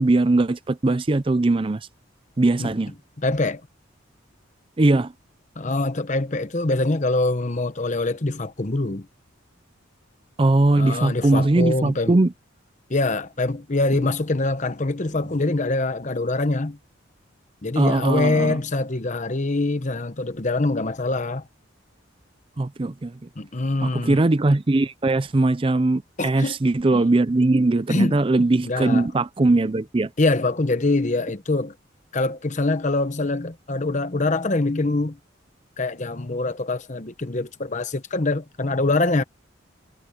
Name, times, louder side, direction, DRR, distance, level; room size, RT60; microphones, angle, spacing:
voice 1, 0.0-1.8 2.4-2.9 4.8-5.1 10.4-12.3 17.8-18.6 22.6-23.3 23.8-30.1, right 2 dB, 25° right, 0.5 m, -20 dB
voice 2, 3.2-3.6 5.6-9.1 10.7-12.2 12.9-16.8 17.6-21.5 23.4-24.2 26.2-26.6 26.9-27.0 27.9-28.2 28.6-29.1 30.2-31.7 32.1-35.2 35.8-39.2, left 2 dB, 40° left, 1.0 m, -24 dB
head